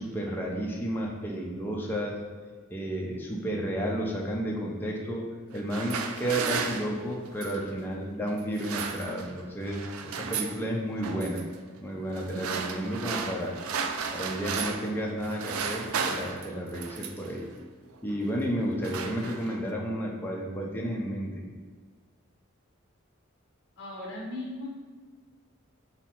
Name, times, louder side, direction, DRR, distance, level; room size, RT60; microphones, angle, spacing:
voice 1, 0.0-2.2 2.7-5.2 5.5-11.4 11.8-13.6 14.1-17.5 18.0-21.4, equal, 10° left, -2 dB, 0.5 m, -32 dB
sound 1, 5.5-7.7 8.4-9.4 9.7-10.6 11.0-11.4 12.1-15.0 15.2-17.3 18.1-18.3 18.6-19.7, right 6 dB, 75° right, 0.4 m, -34 dB
voice 2, 23.8-24.7, left 2 dB, 50° left, -4 dB, 0.9 m, -37 dB
5.6 x 2.0 x 4.4 m, 1.5 s
head